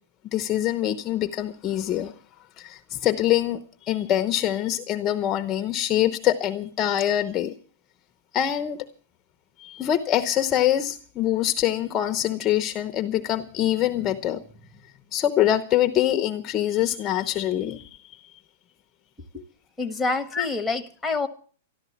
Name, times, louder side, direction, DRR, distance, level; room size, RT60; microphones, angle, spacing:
voice 1, 0.3-2.1 2.6-7.5 8.3-8.8 9.6-14.4 15.1-17.9 20.3-20.5, left 12 dB, 25° left, 0.9 m, -24 dB
voice 2, 19.8-21.3, left 3 dB, 5° left, 1.4 m, -27 dB
13.0 x 12.5 x 7.2 m
hypercardioid pair, 150°, 0 cm